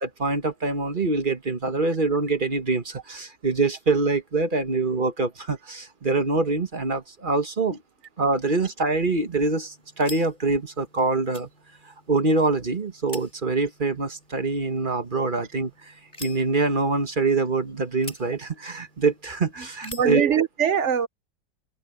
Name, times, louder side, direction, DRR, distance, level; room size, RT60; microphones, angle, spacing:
voice 1, 0.0-7.8 8.2-11.5 11.8-15.9 16.2-20.3, right 3 dB, 30° right, 1.5 m, -25 dB
sound 1, 8.9-20.2, left 2 dB, 20° left, 6.4 m, -47 dB
voice 2, 19.8-21.1, right 8 dB, 50° right, 1.0 m, -23 dB
omnidirectional pair, 2.0 m